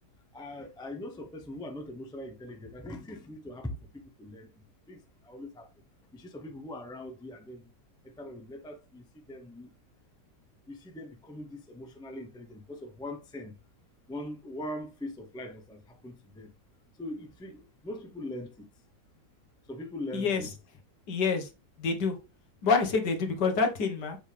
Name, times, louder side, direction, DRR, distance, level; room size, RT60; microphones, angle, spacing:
voice 1, 0.3-4.5 4.9-5.7 6.1-7.7 8.0-9.7 10.7-13.5 14.1-16.5 16.9-18.7 19.6-20.5, left 1 dB, 5° left, 0.4 m, -41 dB
voice 2, 21.1-21.5 21.8-22.2 22.6-24.2, left 5 dB, 70° left, 1.9 m, -27 dB
7.2 x 5.3 x 3.4 m
omnidirectional pair, 1.9 m